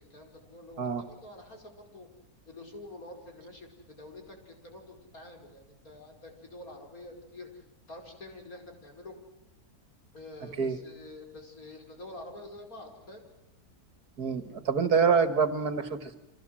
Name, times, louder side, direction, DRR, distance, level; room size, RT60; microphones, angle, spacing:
voice 1, 0.0-2.1 2.5-9.1 10.1-13.3, left 2 dB, 60° left, 3 dB, 5.5 m, -47 dB
voice 2, 14.2-16.2, right 5 dB, 75° right, 10 dB, 2.4 m, -26 dB
29.5 x 25.5 x 7.7 m, 0.86 s
omnidirectional pair, 1.7 m